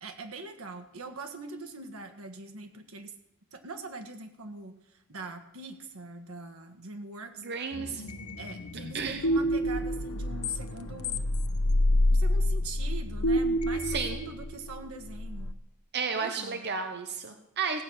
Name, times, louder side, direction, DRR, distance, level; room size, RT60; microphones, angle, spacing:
voice 1, 0.0-3.1 3.5-4.7 5.1-7.5 8.4-11.3 12.1-15.5 16.1-16.6, right 3 dB, 85° right, 6 dB, 1.7 m, -42 dB
voice 2, 7.4-8.0 8.9-9.2 13.8-14.2 15.9-17.8, right 5 dB, 50° right, 6 dB, 0.9 m, -32 dB
sound 1, 7.7-15.5, left 1 dB, 90° left, 0.8 m, -28 dB
16.0 x 8.8 x 6.5 m, 0.83 s
head